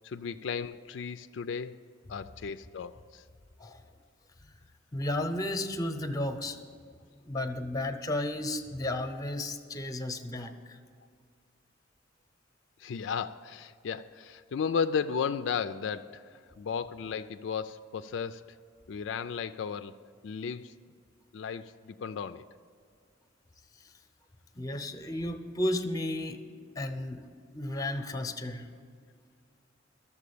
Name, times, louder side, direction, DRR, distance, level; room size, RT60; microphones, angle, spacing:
voice 1, 0.0-1.8 2.1-3.2 12.8-16.2 16.6-18.4 18.9-19.9 20.2-20.7 21.3-22.4, left 6 dB, 75° left, 10 dB, 0.4 m, -34 dB
voice 2, 4.9-6.6 7.2-10.8 24.6-26.4 26.8-27.2 27.5-28.7, left 1 dB, 20° left, 8 dB, 0.8 m, -33 dB
13.0 x 7.2 x 8.4 m, 2.1 s
head